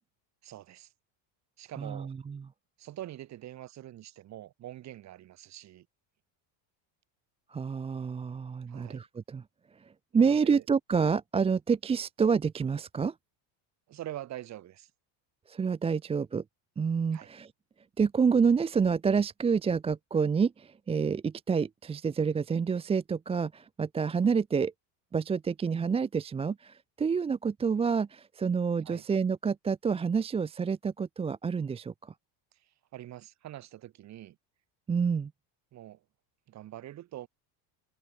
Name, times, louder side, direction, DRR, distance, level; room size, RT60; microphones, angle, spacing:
voice 1, 0.4-0.9 1.6-2.1 2.8-5.9 8.7-9.0 10.1-10.6 13.9-14.9 17.1-17.3 28.8-29.0 32.9-34.4 35.7-36.0 36.5-37.3, right 13 dB, 35° right, 2.8 m, -44 dB
voice 2, 1.8-2.5 7.5-9.4 10.1-13.1 15.5-16.4 16.8-17.5 18.0-24.7 25.1-32.1 34.9-35.3, right 6 dB, 10° right, 0.8 m, -28 dB
cardioid pair, 180°, 49 cm